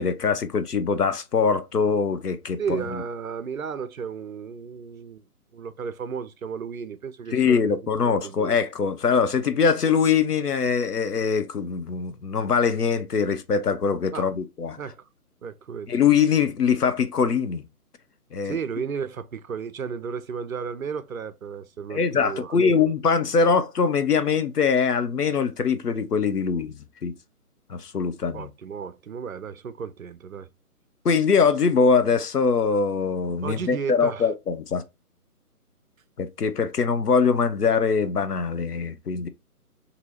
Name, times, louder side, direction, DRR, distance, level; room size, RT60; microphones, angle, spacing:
voice 1, 0.0-3.0 7.3-14.8 15.9-17.6 18.3-18.6 21.9-26.7 27.0-27.1 27.7-28.5 31.0-34.8 36.2-39.3, left 5 dB, 85° left, 0.7 m, -22 dB
voice 2, 2.6-5.2 5.5-7.8 8.0-8.6 14.1-14.3 14.8-15.0 15.4-15.9 18.4-22.8 28.3-30.5 33.4-34.3, right 6 dB, 65° right, 0.5 m, -33 dB
2.7 x 2.6 x 4.2 m
figure-of-eight pair, 145°, 46 cm